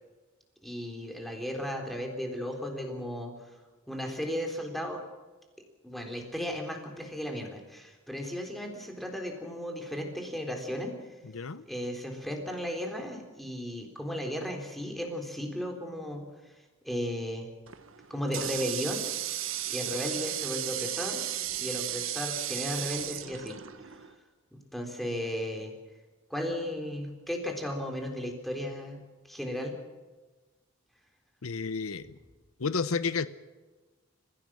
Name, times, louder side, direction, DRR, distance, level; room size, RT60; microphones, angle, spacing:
voice 1, 0.6-3.3 3.9-5.0 5.8-10.9 11.7-16.2 16.9-17.5 18.1-19.0 19.7-21.2 21.6-23.6 24.5-25.7 26.3-29.0 29.3-29.7, equal, ahead, 2 dB, 3.7 m, -35 dB
voice 2, 11.2-11.7 31.4-32.2 32.6-33.3, left 4 dB, 90° left, 15 dB, 0.8 m, -31 dB
Water tap faucet, 17.7-24.1, right 12 dB, 75° right, 1.4 m, -35 dB
29.5 x 16.0 x 6.3 m, 1.3 s
head